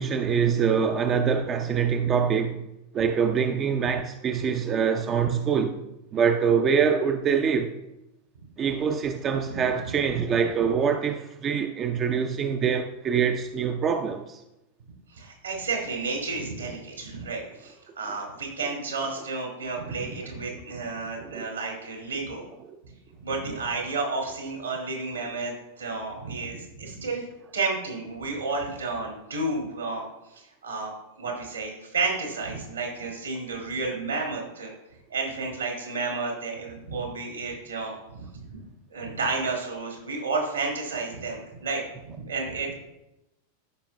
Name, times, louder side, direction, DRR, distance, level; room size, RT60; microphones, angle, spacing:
voice 1, 0.0-2.7 2.9-5.8 6.1-7.7 8.6-14.4 21.2-21.5, right 6 dB, 25° right, 0.5 m, -24 dB
voice 2, 9.5-9.9 15.1-22.4 22.8-22.9 23.2-27.2 27.5-30.0 30.3-30.9 31.2-34.7 35.1-38.5 38.9-42.7, right 3 dB, 75° right, 2.4 m, -31 dB
15.5 x 5.2 x 2.2 m
figure-of-eight pair, 90°, 0 cm